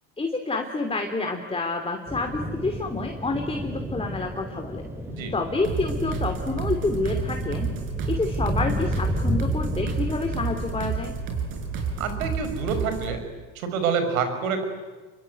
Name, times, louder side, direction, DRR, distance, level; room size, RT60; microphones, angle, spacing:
voice 1, 0.2-4.9 5.3-7.7 8.1-11.2, left 3 dB, 15° left, 4 dB, 2.9 m, -28 dB
sound 1, 2.1-12.5, equal, 5° right, 4.0 m, -32 dB
sound 2, 5.6-13.2, right 6 dB, 55° right, 6.8 m, -31 dB
voice 2, 12.0-13.2 13.6-14.6, right 5 dB, 90° right, 8 dB, 5.5 m, -27 dB
27.0 x 23.0 x 9.6 m, 1.3 s
supercardioid pair, 95°, 40 cm